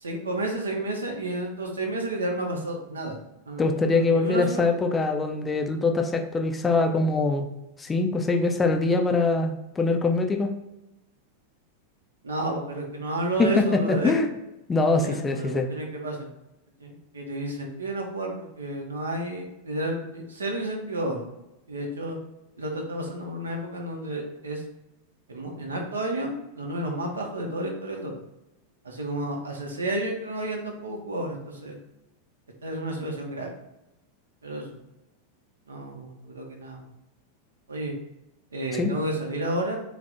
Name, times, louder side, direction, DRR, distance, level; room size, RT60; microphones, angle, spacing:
voice 1, 0.0-3.2 3.5-4.7 12.2-14.2 15.0-16.3 16.8-21.3 21.7-22.2 22.6-24.6 25.3-28.1 28.8-31.8 32.6-33.5 34.4-34.8 35.7-36.8 37.7-37.9 38.5-39.8, right 1 dB, 70° right, 1 dB, 0.7 m, -31 dB
voice 2, 3.6-7.5 7.8-10.5 13.4-14.3 14.7-15.7 38.7-38.9, left 3 dB, 15° left, 4 dB, 0.4 m, -23 dB
3.2 x 2.5 x 3.8 m, 0.91 s
figure-of-eight pair, 90°, 0 cm